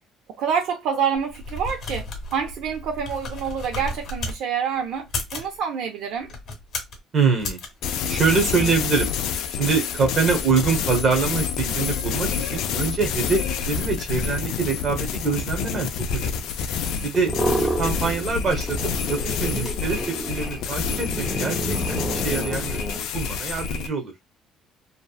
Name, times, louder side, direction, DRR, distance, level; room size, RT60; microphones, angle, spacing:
voice 1, 0.4-6.3 11.7-11.8 16.9-17.2 21.2-21.3, right 7 dB, 60° right, 0.5 m, -27 dB
sound 1, 1.2-4.4 5.0-5.5 6.2-7.0 7.4-7.7, left 2 dB, 45° left, 0.8 m, -33 dB
voice 2, 7.1-7.6 8.1-9.1 9.6-16.5 17.0-17.3 17.6-18.8 19.1-24.1, right 5 dB, 30° right, 0.8 m, -25 dB
sound 2, 7.8-23.9, left 6 dB, 65° left, 0.3 m, -28 dB
sound 3, 17.1-18.4 18.6-23.0, right 1 dB, 5° left, 0.6 m, -29 dB
2.7 x 2.3 x 2.3 m
cardioid pair, 175°, 0 cm